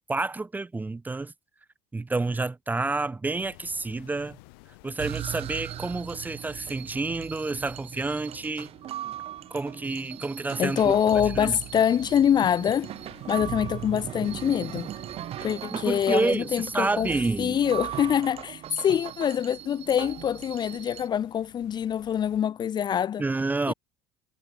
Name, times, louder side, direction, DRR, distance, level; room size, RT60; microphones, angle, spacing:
voice 1, 0.0-1.3 1.9-4.4 4.8-8.7 9.5-10.9 11.3-11.6 15.4-17.6 23.2-23.7, right 3 dB, 15° right, 0.7 m, -29 dB
sound 1, 3.3-22.4, left 30 dB, 80° left, 2.5 m, -55 dB
sound 2, 5.0-21.1, right 12 dB, 50° right, 2.1 m, -38 dB
voice 2, 10.6-12.9 13.3-14.9 15.4-17.1 17.4-23.2 23.7-23.8, left 9 dB, 35° left, 0.5 m, -25 dB
supercardioid pair, 85°, 12 cm